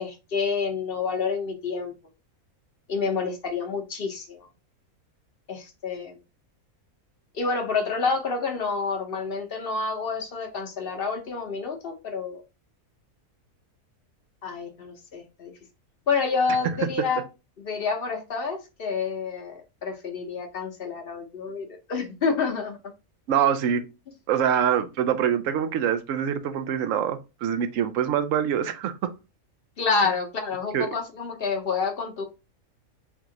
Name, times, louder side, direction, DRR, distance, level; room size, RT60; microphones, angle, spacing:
voice 1, 0.0-1.9 2.9-4.5 5.5-6.2 7.3-12.4 14.4-15.5 16.1-17.2 17.6-22.8 29.8-32.3, left 5 dB, 50° left, 0.8 m, -28 dB
voice 2, 23.3-23.8 24.3-29.1 30.7-30.9, right 9 dB, 70° right, 0.9 m, -24 dB
3.5 x 3.0 x 3.7 m
omnidirectional pair, 1.5 m